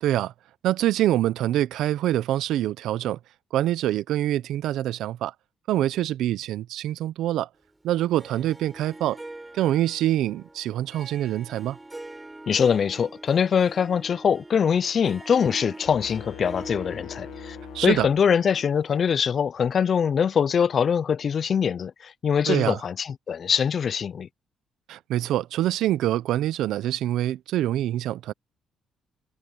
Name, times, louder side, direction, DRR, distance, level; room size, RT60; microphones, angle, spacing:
voice 1, 0.0-0.3 0.6-3.2 3.5-5.3 5.7-7.5 7.8-9.2 9.5-11.8 17.7-18.1 22.5-22.8 24.9-28.3, right 13 dB, 85° right, 0.6 m, -25 dB
Harp, 8.1-19.3, right 2 dB, 15° right, 5.3 m, -44 dB
voice 2, 12.5-17.6 17.8-24.3, left 7 dB, 50° left, 0.4 m, -23 dB
sound 1, 15.8-18.8, left 15 dB, 80° left, 0.7 m, -43 dB
cardioid pair, 90°, 0 cm